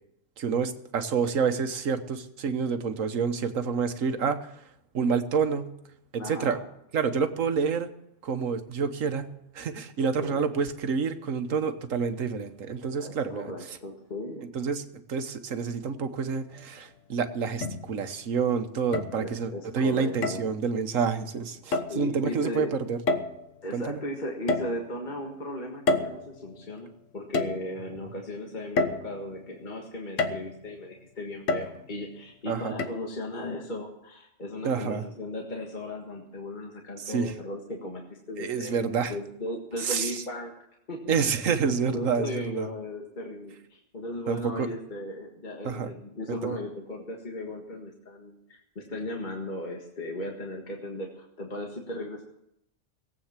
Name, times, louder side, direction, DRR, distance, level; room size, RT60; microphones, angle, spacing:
voice 1, 0.4-4.5 4.9-5.7 6.3-6.6 6.9-7.9 8.2-13.8 14.5-23.0 23.7-24.0 32.5-32.7 34.6-35.0 37.0-37.3 38.4-39.1 39.8-40.1 41.1-42.3 42.6-42.7 44.3-44.7 45.6-45.9 46.3-46.5, right 6 dB, 90° right, 9 dB, 1.5 m, -28 dB
voice 2, 6.2-6.6 10.2-10.5 13.0-14.4 19.2-20.4 21.9-22.7 23.6-40.5 40.9-41.0 41.6-52.2, left 1 dB, 35° left, 0 dB, 1.9 m, -37 dB
sound 1, 16.5-16.6 17.6-18.2 18.9-19.6 20.2-20.6 21.7-22.0 23.1-23.6 24.5-25.2 25.9-26.7 27.3-28.0 28.8-29.5 30.2-30.7 31.5-32.1 32.8-32.9, left 3 dB, 75° left, 1.4 m, -29 dB
18.0 x 8.5 x 7.3 m, 0.79 s
omnidirectional pair, 1.3 m